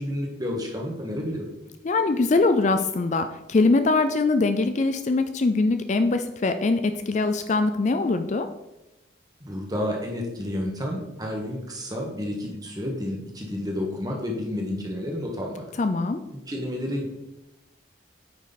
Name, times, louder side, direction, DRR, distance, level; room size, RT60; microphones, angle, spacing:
voice 1, 0.0-1.5 9.4-15.6 16.5-17.1, left 1 dB, 20° right, 0 dB, 1.4 m, -30 dB
voice 2, 1.8-8.5 15.8-16.2, left 3 dB, 40° left, 9 dB, 0.4 m, -22 dB
9.1 x 5.1 x 4.1 m, 0.95 s
head